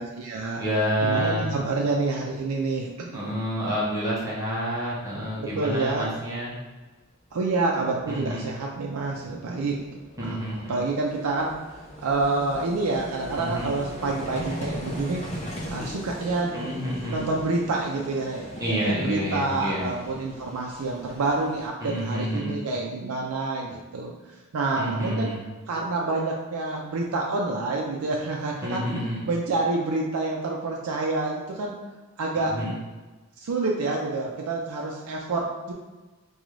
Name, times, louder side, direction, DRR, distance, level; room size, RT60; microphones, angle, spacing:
voice 1, 0.0-0.6 1.0-3.2 5.4-6.1 7.3-11.5 12.0-15.2 15.6-16.6 17.1-24.1 24.5-25.3 25.7-28.9 29.3-31.7 32.2-32.5 33.4-35.7, right 3 dB, 85° right, -1 dB, 0.4 m, -28 dB
voice 2, 0.6-1.5 3.1-6.5 8.1-8.4 10.2-10.7 13.4-13.7 16.5-17.2 18.6-19.9 21.8-22.6 24.8-25.4 28.6-29.3 32.5-32.7, equal, 15° right, -7 dB, 0.7 m, -28 dB
Vehicle, 6.0-6.1 8.0-8.1 8.3-21.7, equal, 30° left, 0.5 m, -39 dB
3.8 x 2.3 x 3.1 m, 1.2 s
head